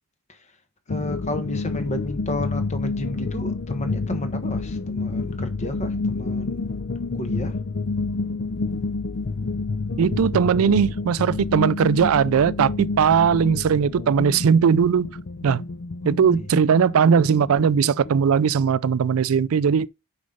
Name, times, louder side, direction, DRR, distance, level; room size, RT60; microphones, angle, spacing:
sound 1, 0.9-18.2, left 3 dB, 55° left, 0.5 m, -29 dB
voice 1, 0.9-6.7 7.2-7.6 16.3-16.5, left 1 dB, 35° left, 1.3 m, -32 dB
voice 2, 10.0-15.1 15.4-15.6 16.0-19.9, right 7 dB, 90° right, 0.4 m, -19 dB
6.4 x 5.1 x 5.3 m
head